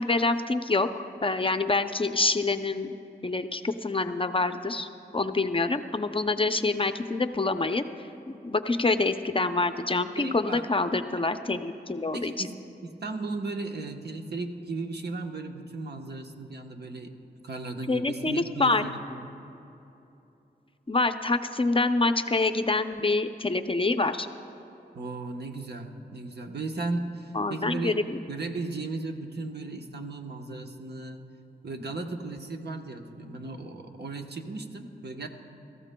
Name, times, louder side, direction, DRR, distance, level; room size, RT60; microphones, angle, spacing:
voice 1, 0.0-2.9 3.2-7.8 8.3-12.3 17.9-18.8 20.9-24.3 27.3-28.2, left 3 dB, 30° left, 9 dB, 0.5 m, -26 dB
voice 2, 10.2-10.7 12.1-12.6 12.8-17.1 17.4-19.2 24.9-28.0 28.3-31.2 31.6-35.3, right 3 dB, 65° right, 4 dB, 1.0 m, -36 dB
23.5 x 14.0 x 2.2 m, 2.9 s
wide cardioid pair, 70°, 18 cm